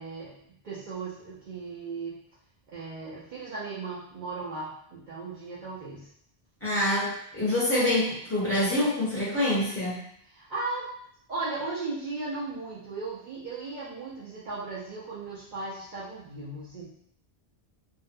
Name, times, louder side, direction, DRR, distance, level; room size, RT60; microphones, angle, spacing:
voice 1, 0.0-2.2 2.7-6.1 10.2-10.9 11.3-16.9, right 3 dB, 55° right, -9 dB, 0.6 m, -36 dB
voice 2, 6.6-10.0, left 1 dB, 15° left, -11 dB, 1.0 m, -26 dB
2.5 x 2.1 x 2.5 m, 0.69 s
omnidirectional pair, 1.1 m